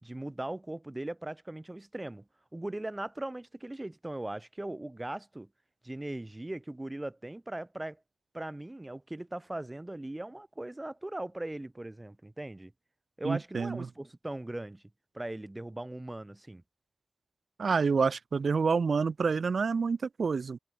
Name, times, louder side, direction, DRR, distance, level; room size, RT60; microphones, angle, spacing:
voice 1, 0.0-2.2 2.5-5.5 5.8-8.0 8.3-12.7 13.2-14.8 15.1-16.6, right 1 dB, 20° right, 1.5 m, -39 dB
voice 2, 13.2-13.9 17.6-20.6, right 5 dB, 75° right, 0.7 m, -28 dB
wide cardioid pair, 105°, 0 cm